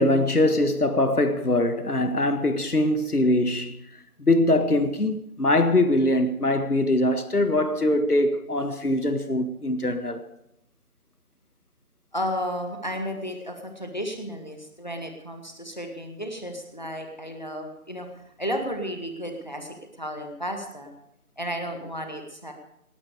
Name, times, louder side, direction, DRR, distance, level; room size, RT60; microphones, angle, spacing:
voice 1, 0.0-3.8 4.2-10.3, left 1 dB, 85° left, 1.8 m, -22 dB
voice 2, 12.1-18.1 18.4-20.9 21.4-22.5, equal, 30° left, 1.9 m, -33 dB
19.0 x 12.0 x 5.0 m
figure-of-eight pair, 180°, 44 cm